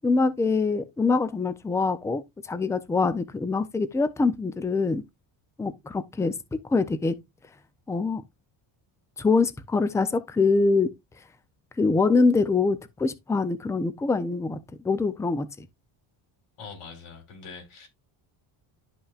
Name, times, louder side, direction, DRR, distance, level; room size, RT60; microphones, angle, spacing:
voice 1, 0.0-2.2 2.5-5.0 5.6-7.2 7.9-8.2 9.2-10.9 11.8-14.6 14.8-15.7, left 4 dB, 5° left, 0.4 m, -24 dB
voice 2, 16.6-17.9, left 5 dB, 80° left, 4.4 m, -43 dB
11.5 x 5.5 x 2.4 m
cardioid pair, 165°, 49 cm